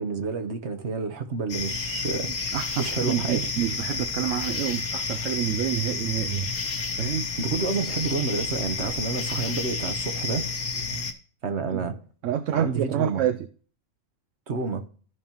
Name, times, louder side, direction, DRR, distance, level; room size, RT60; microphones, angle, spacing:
voice 1, 0.0-2.3 2.8-3.4 7.4-10.5 11.4-12.0 12.5-13.2 14.5-14.8, right 4 dB, 60° right, 1.3 m, -29 dB
sound 1, 1.5-11.1, left 4 dB, 75° left, 1.5 m, -30 dB
voice 2, 2.4-6.5 7.0-7.3 10.9-11.0 11.7-11.9 12.2-13.5, right 11 dB, 75° right, 0.9 m, -28 dB
14.0 x 5.3 x 2.9 m
omnidirectional pair, 1.3 m